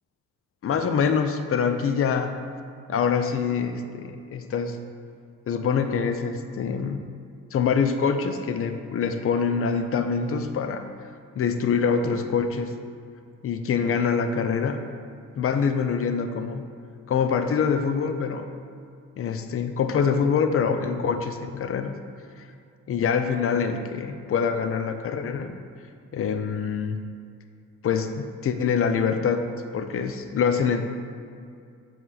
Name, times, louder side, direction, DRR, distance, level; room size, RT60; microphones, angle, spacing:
voice 1, 0.6-2.4 2.9-4.8 5.5-7.0 7.5-10.8 11.4-12.7 13.4-14.8 15.4-16.6 17.1-18.5 19.2-21.9 22.9-25.5 26.1-27.0 27.8-30.8, left 6 dB, 50° left, 8 dB, 0.6 m, -25 dB
7.6 x 4.6 x 4.1 m, 2.4 s
cardioid pair, 90°, 30 cm